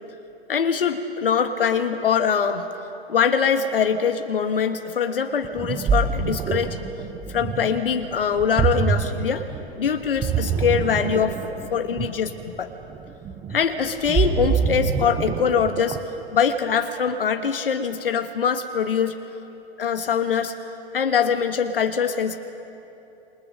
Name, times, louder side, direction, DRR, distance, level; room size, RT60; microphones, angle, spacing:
voice 1, 0.5-2.7 3.1-6.8 7.3-9.4 9.8-11.4 11.7-12.7 13.5-16.0 16.3-19.1 19.8-20.5 20.9-22.4, left 7 dB, 60° left, 7 dB, 1.5 m, -23 dB
Ocean, 5.4-16.2, right 6 dB, 10° right, 0.7 m, -26 dB
27.5 x 27.0 x 6.5 m, 3.0 s
figure-of-eight pair, 115°, 32 cm